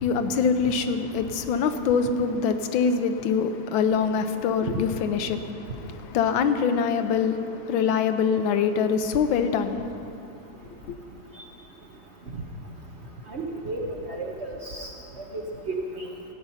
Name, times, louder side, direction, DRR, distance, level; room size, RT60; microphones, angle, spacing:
voice 1, 0.0-10.0 10.9-11.0, left 6 dB, 85° left, 1.5 m, -24 dB
voice 2, 13.3-14.9 15.7-16.0, right 2 dB, 45° right, 0.9 m, -32 dB
14.5 x 9.1 x 5.6 m
omnidirectional pair, 2.1 m